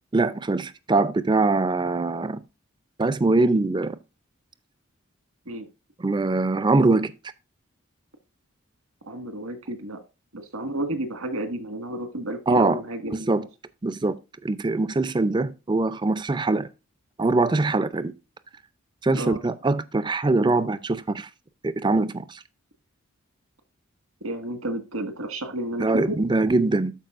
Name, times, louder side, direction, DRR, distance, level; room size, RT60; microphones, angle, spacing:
voice 1, 0.1-2.4 3.0-4.0 6.0-7.1 12.5-12.8 13.1-13.4 13.8-14.2 14.4-16.7 17.2-18.1 19.0-21.3 21.6-22.4 25.8-26.9, right 3 dB, 20° right, 0.4 m, -22 dB
voice 2, 9.1-10.0 10.3-13.4 19.1-19.4 24.2-26.1, right 1 dB, 85° right, 1.7 m, -31 dB
13.0 x 4.7 x 2.5 m
head